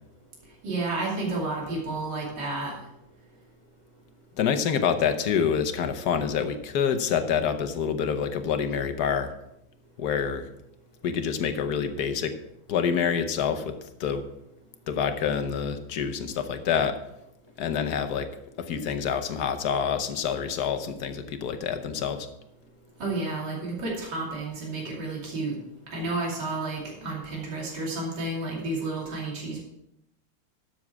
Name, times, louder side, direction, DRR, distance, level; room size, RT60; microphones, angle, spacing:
voice 1, 0.6-2.7 23.0-25.6 25.9-29.6, right 2 dB, 55° right, -3 dB, 3.2 m, -31 dB
voice 2, 4.4-9.3 10.0-10.5 11.0-12.3 12.7-13.7 14.0-14.2 14.9-17.0 17.6-18.3 18.6-22.3, left 7 dB, 55° left, 8 dB, 1.3 m, -27 dB
12.5 x 7.3 x 4.6 m, 0.83 s
omnidirectional pair, 2.3 m